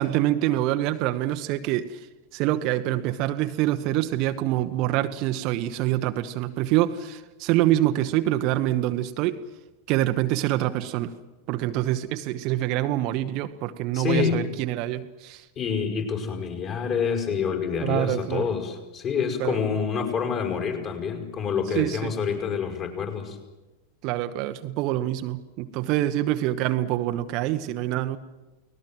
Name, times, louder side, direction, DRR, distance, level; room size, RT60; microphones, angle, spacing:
voice 1, 0.0-2.0 2.3-9.4 9.9-11.1 11.5-15.4 17.8-18.5 19.4-19.6 21.7-22.1 24.0-28.2, right 14 dB, 40° right, 9 dB, 1.0 m, -25 dB
voice 2, 13.9-14.4 15.6-23.4, left 6 dB, 35° left, 4 dB, 5.7 m, -27 dB
30.0 x 19.0 x 7.7 m, 1.1 s
figure-of-eight pair, 90°, 0 cm